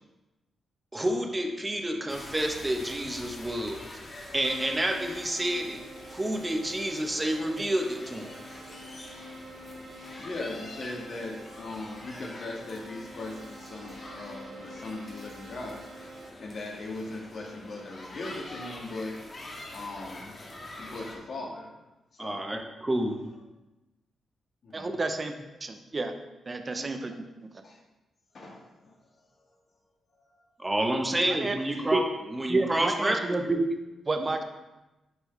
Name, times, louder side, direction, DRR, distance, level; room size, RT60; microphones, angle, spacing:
voice 1, 0.9-3.8 4.3-5.8 6.1-8.3 22.2-23.2 30.6-32.0 32.3-33.6, right 1 dB, 20° right, 3 dB, 1.1 m, -29 dB
sound 1, 2.1-21.2, left 1 dB, 40° left, 1.8 m, -46 dB
Keyboard (musical), 4.4-16.3, right 1 dB, 65° right, 0.9 m, -47 dB
voice 2, 10.2-15.8 16.4-19.2 19.7-20.3 20.8-21.7 22.1-22.5 24.6-24.9 26.7-27.2 27.6-27.8 28.3-29.0 30.3-30.4 31.6-31.9 34.1-34.2, left 2 dB, 60° left, -2 dB, 2.0 m, -39 dB
voice 3, 24.7-25.3 25.6-26.1 26.5-27.1 31.3-31.6 31.9-32.0 32.5-34.4, right 2 dB, 35° right, 6 dB, 0.7 m, -29 dB
11.5 x 4.4 x 3.4 m, 1.0 s
cardioid pair, 75°, 0 cm